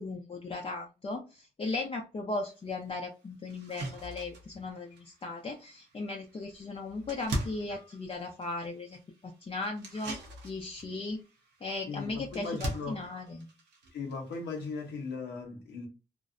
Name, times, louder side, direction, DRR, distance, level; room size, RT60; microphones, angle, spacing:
voice 1, 0.0-10.2 10.4-11.2 11.6-13.5, left 3 dB, 35° left, 0.5 m, -37 dB
sound 1, 2.5-2.6 3.0-3.1 3.5-15.1, right 1 dB, 85° right, 0.7 m, -43 dB
voice 2, 11.9-13.0 13.9-15.9, left 4 dB, 90° left, 0.8 m, -38 dB
2.5 x 2.0 x 2.5 m
cardioid pair, 65°, 17 cm